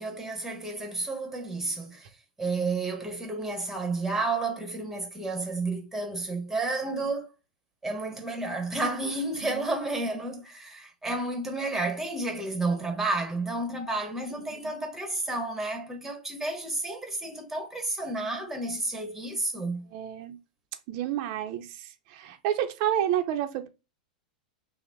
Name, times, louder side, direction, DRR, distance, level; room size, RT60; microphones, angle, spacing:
voice 1, 0.0-2.1 2.4-7.3 7.8-19.9, right 2 dB, 5° right, 1.2 m, -31 dB
voice 2, 19.9-20.4 20.9-21.7 22.1-23.7, right 11 dB, 50° right, 0.6 m, -29 dB
5.6 x 2.1 x 3.5 m
hypercardioid pair, 100°, 5 cm